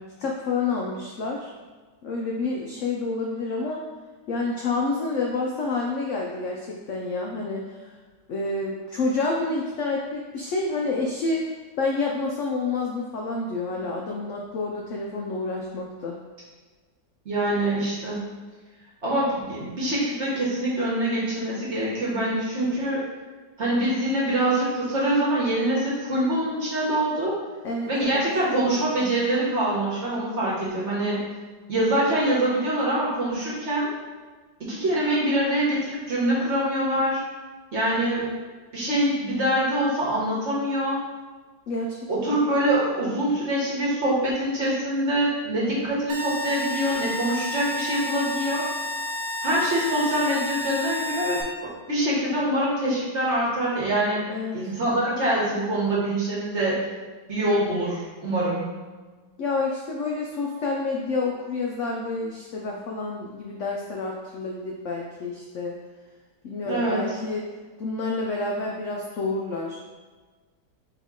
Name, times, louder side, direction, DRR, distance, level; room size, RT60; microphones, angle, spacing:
voice 1, 0.2-1.5 2.0-3.8 4.3-7.9 8.3-16.2 27.6-28.2 41.7-42.4 54.3-54.7 59.4-65.8 66.4-67.5 67.8-69.8, left 3 dB, 80° left, -1 dB, 0.6 m, -29 dB
voice 2, 17.2-18.2 19.0-23.0 23.6-27.4 27.9-31.2 31.7-33.9 34.6-37.2 37.7-38.3 38.7-41.0 42.1-48.6 49.4-51.4 51.9-54.2 54.5-56.8 57.3-58.6 66.6-67.0, right 1 dB, 45° right, -6 dB, 1.2 m, -24 dB
sound 1, 46.1-51.4, left 1 dB, 80° right, 1.5 m, -31 dB
4.3 x 2.9 x 3.6 m, 1.4 s
omnidirectional pair, 1.8 m